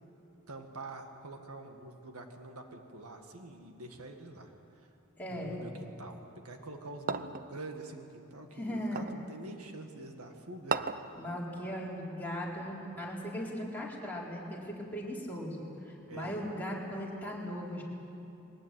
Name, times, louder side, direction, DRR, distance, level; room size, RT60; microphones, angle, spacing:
voice 1, 0.5-4.5 4.8-4.9 5.3-10.8 16.1-16.4, right 2 dB, 85° right, 4 dB, 2.0 m, -46 dB
voice 2, 5.2-5.6 8.5-9.1 11.1-17.8, equal, 10° left, -5 dB, 4.2 m, -38 dB
sound 1, 7.1-7.5 9.0-9.2 10.7-11.1, right 5 dB, 40° right, 0.7 m, -34 dB
22.0 x 19.5 x 9.3 m, 2.9 s
head